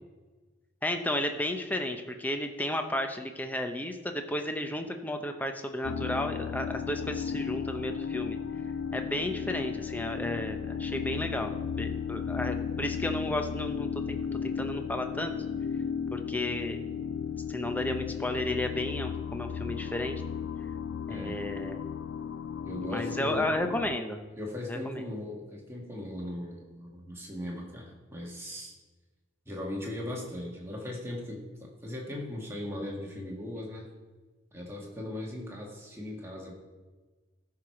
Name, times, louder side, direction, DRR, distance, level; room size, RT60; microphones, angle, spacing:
voice 1, 0.8-8.4 8.9-15.3 16.1-16.8 17.5-20.2 21.1-21.8 22.9-24.2 24.7-25.0, left 1 dB, 10° left, 5 dB, 0.7 m, -33 dB
sound 1, 5.8-24.0, left 7 dB, 65° left, 0.4 m, -35 dB
voice 2, 21.1-21.4 22.7-23.5 24.4-28.7 29.5-33.9 34.5-36.5, left 1 dB, 10° right, -2 dB, 1.8 m, -38 dB
14.0 x 4.8 x 5.8 m, 1.3 s
head